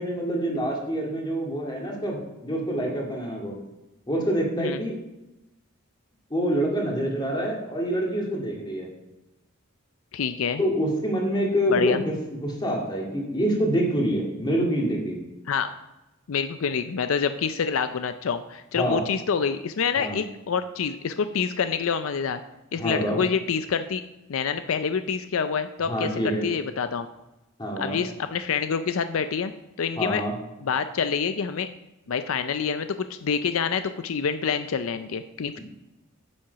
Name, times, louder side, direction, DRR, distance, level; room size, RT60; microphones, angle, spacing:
voice 1, 0.0-3.6 4.1-4.9 6.3-8.9 10.6-12.1 12.4-15.2 18.8-19.0 20.0-20.2 22.8-23.2 25.8-26.5 27.6-28.0 30.0-30.3, equal, 20° left, -1 dB, 2.1 m, -26 dB
voice 2, 10.1-10.6 11.7-12.0 15.5-15.7 16.3-22.4 22.7-24.0 24.3-27.1 27.8-29.5 29.8-30.2 30.6-31.7 32.1-35.6, left 6 dB, 80° left, 10 dB, 0.5 m, -27 dB
8.8 x 7.6 x 5.6 m, 0.98 s
head